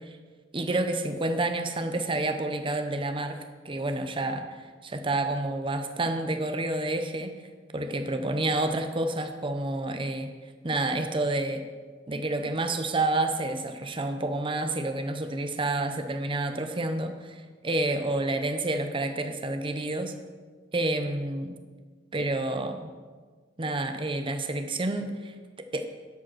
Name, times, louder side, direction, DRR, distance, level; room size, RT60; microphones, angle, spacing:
voice 1, 0.5-3.4 3.6-4.4 4.8-7.3 7.7-10.3 10.6-11.6 12.1-20.1 20.7-21.6 22.1-22.9 23.6-25.3 25.7-25.9, right 2 dB, 25° right, 7 dB, 0.7 m, -29 dB
12.0 x 5.1 x 6.2 m, 1.5 s
head